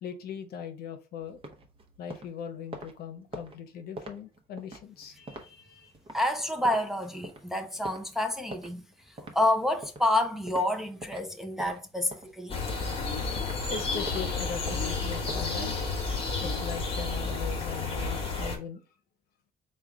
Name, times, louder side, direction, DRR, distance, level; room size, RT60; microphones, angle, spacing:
voice 1, 0.0-1.4 2.0-5.9 13.7-15.7 16.4-18.8, left 7 dB, 65° left, 0.8 m, -39 dB
sound 1, 1.2-11.3 11.6-13.7 14.1-14.3 14.7-16.5, right 1 dB, 30° right, 0.8 m, -45 dB
voice 2, 6.1-12.6, left 1 dB, ahead, 0.5 m, -29 dB
sound 2, 12.5-18.6, left 3 dB, 35° left, 1.1 m, -31 dB
3.7 x 2.3 x 4.5 m
cardioid pair, 110°, 17 cm